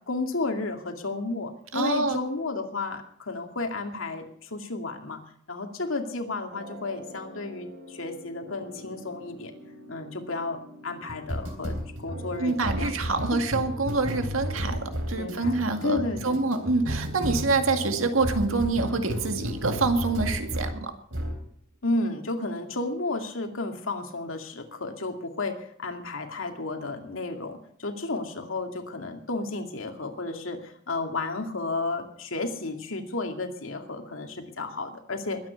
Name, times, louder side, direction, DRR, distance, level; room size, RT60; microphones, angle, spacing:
voice 1, 0.1-5.2 5.5-9.5 9.9-12.9 13.3-13.4 15.2-16.5 21.8-35.5, left 3 dB, 80° left, 4 dB, 2.4 m, -32 dB
voice 2, 1.7-2.2 12.4-21.0, right 3 dB, 85° right, 6 dB, 2.1 m, -26 dB
sound 1, 6.5-20.8 21.1-21.4, equal, 70° right, 3.5 m, -34 dB
21.5 x 9.1 x 5.8 m, 0.67 s
head